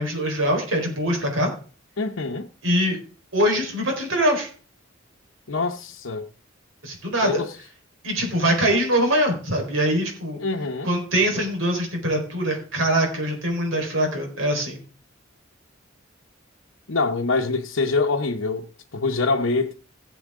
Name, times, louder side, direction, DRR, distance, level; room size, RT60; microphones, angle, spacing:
voice 1, 0.0-1.5 2.6-3.0 3.3-4.5 6.8-7.5 8.0-10.4 10.8-14.8, equal, 75° right, 4.2 m, -23 dB
voice 2, 2.0-2.5 5.5-6.3 7.2-7.5 10.4-10.9 16.9-18.7 18.9-19.7, left 3 dB, 80° left, 0.9 m, -25 dB
17.0 x 7.2 x 3.6 m
head